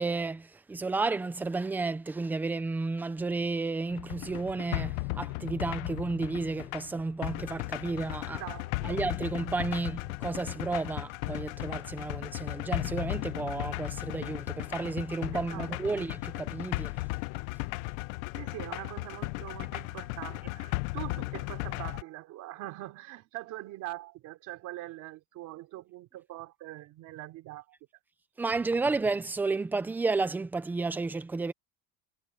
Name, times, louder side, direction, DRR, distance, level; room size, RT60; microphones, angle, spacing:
voice 1, 0.0-8.4 8.8-16.9 28.4-31.5, right 3 dB, 5° right, 0.4 m, -32 dB
sound 1, 3.9-22.0, left 23 dB, 70° left, 0.7 m, -36 dB
voice 2, 8.4-9.1 15.3-16.0 18.3-27.6, right 16 dB, 45° right, 3.1 m, -43 dB
cardioid pair, 175°, 41 cm